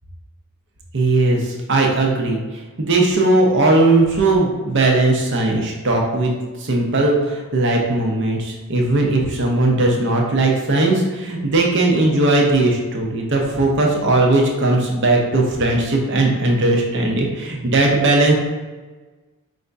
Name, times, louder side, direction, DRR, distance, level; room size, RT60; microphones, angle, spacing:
voice 1, 0.9-18.3, right 2 dB, 55° right, 0 dB, 0.8 m, -18 dB
5.1 x 2.6 x 3.4 m, 1.3 s
head